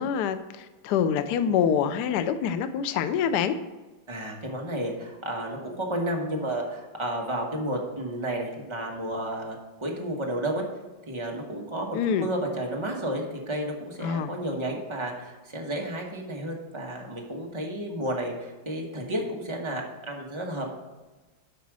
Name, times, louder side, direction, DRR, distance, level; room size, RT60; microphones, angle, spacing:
voice 1, 0.0-3.6 11.9-12.3 14.0-14.3, left 8 dB, 80° left, 10 dB, 0.9 m, -26 dB
voice 2, 4.1-10.6 11.1-20.7, right 1 dB, 20° right, 0 dB, 0.9 m, -32 dB
8.3 x 5.0 x 6.1 m, 1.2 s
omnidirectional pair, 2.3 m